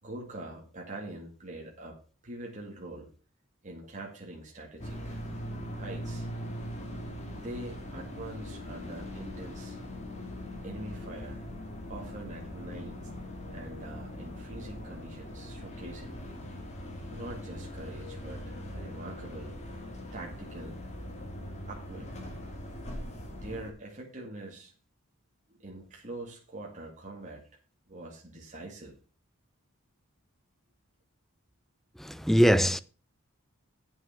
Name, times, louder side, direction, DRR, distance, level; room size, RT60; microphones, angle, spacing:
voice 1, 0.0-2.0 2.2-3.1 3.6-5.2 5.8-6.3 7.3-9.8 10.6-11.5 11.9-13.0 13.5-16.2 17.1-19.8 20.1-20.8 21.6-22.1 23.4-24.7 25.5-27.4 27.9-28.9, right 2 dB, 35° right, 2.1 m, -43 dB
sound 1, 4.8-23.7, equal, 30° left, 2.4 m, -41 dB
voice 2, 32.0-32.8, equal, ahead, 0.4 m, -22 dB
9.1 x 7.0 x 5.8 m
head